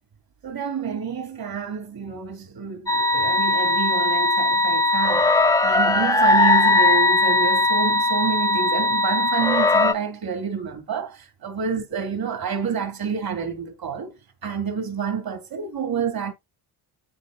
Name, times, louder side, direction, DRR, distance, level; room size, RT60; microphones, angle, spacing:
voice 1, 0.4-14.1 14.4-16.3, right 6 dB, 55° right, 3.5 m, -28 dB
sound 1, 2.9-9.9, left 2 dB, 10° left, 0.8 m, -19 dB
13.0 x 4.4 x 2.9 m
cardioid pair, 120°, 43 cm